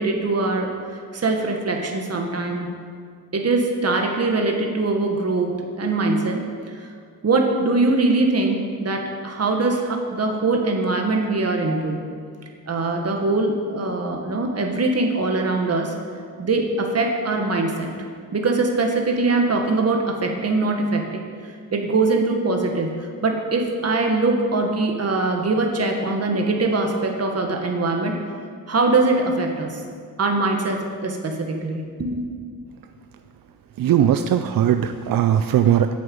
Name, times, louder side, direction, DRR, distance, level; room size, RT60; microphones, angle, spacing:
voice 1, 0.0-2.7 3.3-6.4 6.7-6.9 7.2-12.1 12.7-15.9 16.4-17.9 18.3-28.2 28.7-29.8 30.2-32.3, right 3 dB, 50° right, 2 dB, 1.5 m, -22 dB
voice 2, 33.8-35.9, right 10 dB, 85° right, 8 dB, 0.5 m, -19 dB
9.0 x 6.8 x 8.6 m, 2.1 s
wide cardioid pair, 115°, 33 cm